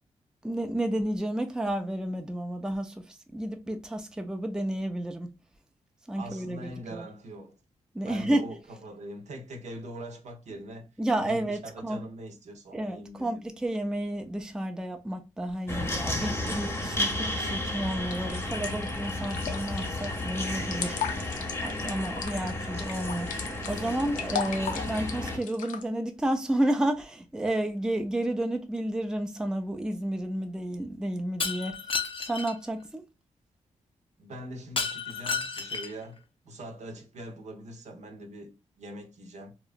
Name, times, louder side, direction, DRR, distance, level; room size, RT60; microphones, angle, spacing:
voice 1, 0.4-5.3 6.1-7.1 7.9-8.5 11.0-12.0 12.7-21.0 21.6-31.8 32.2-33.0, right 1 dB, 5° right, 0.4 m, -31 dB
voice 2, 6.2-7.5 8.0-10.9 11.2-13.4 15.7-16.8 34.2-39.5, right 1 dB, 65° right, 0.7 m, -42 dB
sound 1, 15.7-25.4, left 1 dB, 20° left, 0.8 m, -33 dB
sound 2, 18.1-25.8, left 7 dB, 90° left, 0.4 m, -37 dB
Shatter, 31.4-32.5 34.8-36.0, left 5 dB, 45° left, 0.5 m, -32 dB
2.9 x 2.3 x 2.4 m
cardioid pair, 70°, 13 cm